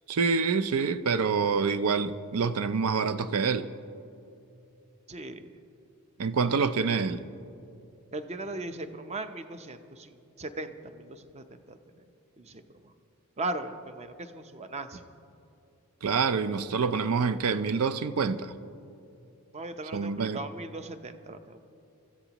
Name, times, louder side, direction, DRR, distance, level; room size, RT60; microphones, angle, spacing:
voice 1, 0.1-3.7 6.2-7.2 16.0-18.5 19.9-20.4, right 5 dB, 75° right, 0.5 m, -26 dB
voice 2, 5.1-5.5 8.1-11.8 12.4-12.9 13.4-15.0 19.5-21.6, right 2 dB, 30° right, 0.6 m, -38 dB
24.0 x 14.5 x 3.0 m
head